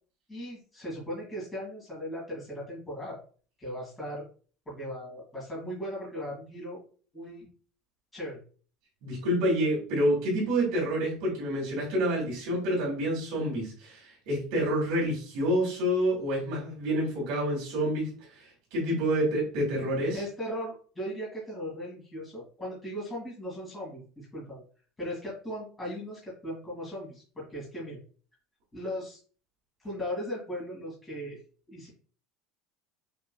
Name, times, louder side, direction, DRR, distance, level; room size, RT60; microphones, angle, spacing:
voice 1, 0.3-3.2 3.6-4.2 4.7-6.8 7.1-7.5 8.1-8.4 20.1-24.6 25.0-28.0 28.7-29.2 29.8-31.4 31.7-31.9, equal, 10° left, -7 dB, 2.1 m, -38 dB
voice 2, 9.0-20.2, equal, 55° right, -3 dB, 2.5 m, -28 dB
6.0 x 3.6 x 2.3 m, 0.40 s
cardioid pair, 180°, 0 cm